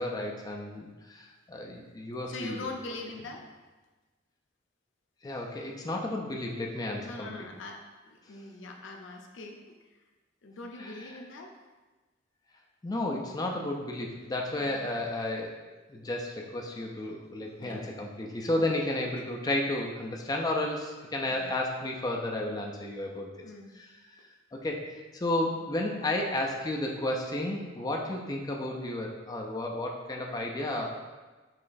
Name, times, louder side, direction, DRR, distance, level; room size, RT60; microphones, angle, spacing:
voice 1, 0.0-2.7 5.2-7.5 10.8-11.2 12.8-15.5 15.9-23.3 23.7-23.9 24.5-30.9, left 1 dB, 20° left, 0 dB, 0.3 m, -32 dB
voice 2, 2.3-3.5 7.0-9.6 10.4-11.6 14.6-14.9 17.6-17.8 18.6-18.9 21.3-21.5 23.4-23.7 25.5-25.6, left 2 dB, 80° left, 2 dB, 0.5 m, -42 dB
5.6 x 3.1 x 2.5 m, 1.2 s
head